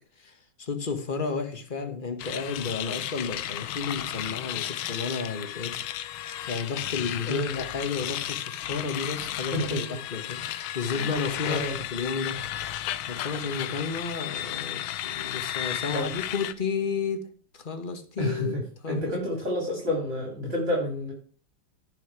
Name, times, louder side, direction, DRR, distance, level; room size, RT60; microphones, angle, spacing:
voice 1, 0.2-5.8 6.5-11.6 11.9-12.4 12.7-17.2 17.5-19.2, left 5 dB, 25° left, 6 dB, 1.4 m, -32 dB
sound 1, 2.2-16.5, left 12 dB, 75° left, 1.5 m, -34 dB
voice 2, 7.2-7.6 9.4-10.0 10.9-11.1 11.5-11.8 15.9-16.1 18.2-21.1, left 1 dB, 30° right, -1 dB, 3.7 m, -30 dB
16.5 x 5.8 x 4.8 m, 0.41 s
omnidirectional pair, 2.4 m